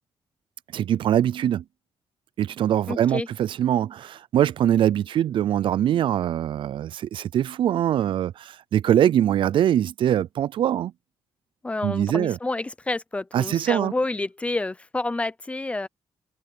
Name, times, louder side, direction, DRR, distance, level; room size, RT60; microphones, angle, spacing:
voice 1, 0.7-1.6 2.4-10.9 11.8-12.4 13.3-13.9, right 11 dB, 60° right, 0.4 m, -23 dB
voice 2, 2.9-3.3 11.6-15.9, left 2 dB, 15° left, 0.5 m, -29 dB
wide cardioid pair, 175°, 10 cm